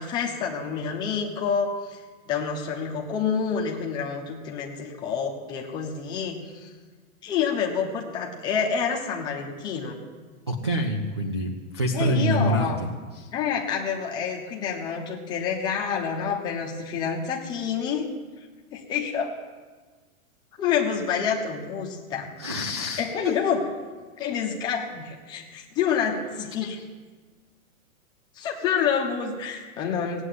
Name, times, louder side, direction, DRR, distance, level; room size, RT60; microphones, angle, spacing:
voice 1, 0.0-2.0 2.3-6.7 7.2-10.0 11.9-12.8 13.3-18.1 18.7-19.3 20.6-22.3 23.0-23.6 24.2-26.8 28.3-30.2, left 7 dB, 10° left, -1 dB, 1.0 m, -28 dB
voice 2, 10.5-13.3 22.4-23.4 26.6-26.7, equal, 20° right, 4 dB, 0.4 m, -27 dB
17.5 x 8.0 x 9.4 m, 1.4 s
supercardioid pair, 180°, 41 cm